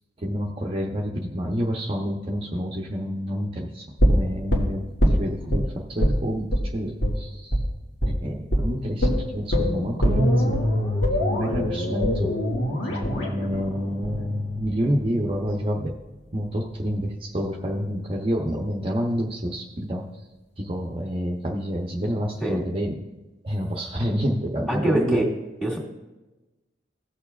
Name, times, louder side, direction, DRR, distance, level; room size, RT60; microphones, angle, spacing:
voice 1, 0.2-7.6 8.0-10.6 11.1-12.3 12.9-15.9 16.3-20.1 20.6-23.2 23.4-25.2, equal, 30° right, -1 dB, 0.7 m, -28 dB
sound 1, 4.0-5.6 6.0-6.2 6.5-6.6 7.0-7.1 7.5-7.6 8.0-8.2 8.5-8.6 9.0-15.0 15.3-15.4, equal, 75° left, 1.8 m, -23 dB
voice 2, 24.7-25.3 25.6-25.8, right 1 dB, 5° left, -4 dB, 2.1 m, -23 dB
16.5 x 6.9 x 2.4 m, 1.1 s
head